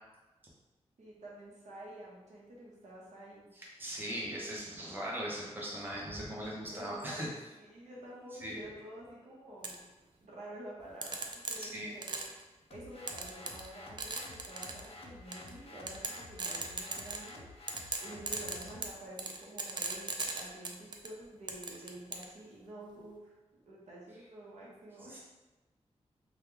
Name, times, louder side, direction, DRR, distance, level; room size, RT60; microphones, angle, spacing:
voice 1, 1.0-3.5 6.7-7.3 7.6-12.3 12.7-17.5 17.9-25.2, right 1 dB, 85° right, -5 dB, 0.9 m, -49 dB
voice 2, 3.5-7.3 8.4-8.6 11.6-11.9 25.1-25.2, equal, 20° right, -5 dB, 0.8 m, -39 dB
sound 1, 9.6-9.8 11.0-12.4 13.1-13.7 14.0-14.9 15.3-15.5 15.9-17.4 17.7-21.1 21.5-22.3, right 4 dB, 40° right, 0.3 m, -38 dB
sound 2, 12.7-18.9, left 2 dB, 60° left, 0.5 m, -51 dB
2.9 x 2.3 x 3.6 m, 1.1 s
wide cardioid pair, 115°, 12 cm